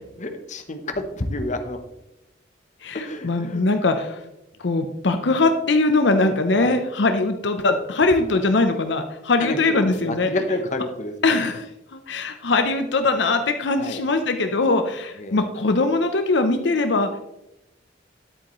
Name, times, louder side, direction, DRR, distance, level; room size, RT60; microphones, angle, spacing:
voice 1, 0.2-1.8 2.9-3.6 6.6-6.8 8.2-8.4 9.4-11.4 13.8-14.0 15.2-15.4, left 1 dB, 40° left, 6 dB, 0.9 m, -29 dB
voice 2, 2.8-4.2 4.6-10.3 11.2-17.2, left 3 dB, 70° left, 7 dB, 0.7 m, -21 dB
10.5 x 8.4 x 3.1 m, 0.88 s
head